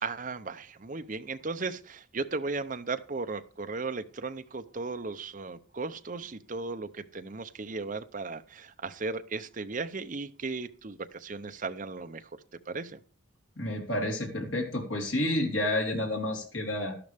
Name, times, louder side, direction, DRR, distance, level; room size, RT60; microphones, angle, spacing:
voice 1, 0.0-12.3 12.7-13.0, right 3 dB, 40° right, 9 dB, 0.6 m, -36 dB
voice 2, 13.6-17.0, left 1 dB, 75° left, 0 dB, 3.8 m, -30 dB
12.0 x 11.5 x 3.5 m, 0.42 s
head